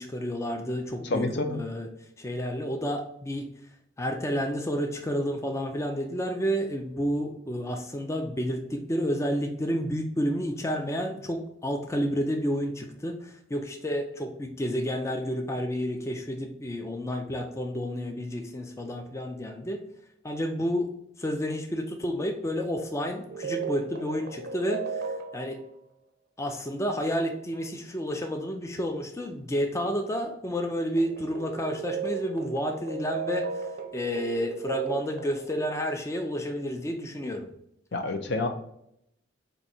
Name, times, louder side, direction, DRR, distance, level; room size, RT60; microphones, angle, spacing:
voice 1, 0.0-1.2 1.6-1.9 2.2-3.5 4.0-19.8 20.2-20.9 21.2-25.6 26.4-33.7 33.9-37.5, equal, 15° left, 4 dB, 0.4 m, -30 dB
voice 2, 1.0-1.6 37.9-38.5, left 2 dB, 65° left, 5 dB, 0.6 m, -28 dB
sound 1, 23.3-25.7 31.0-35.5, right 6 dB, 55° right, 0.5 m, -35 dB
4.6 x 2.7 x 4.1 m, 0.75 s
head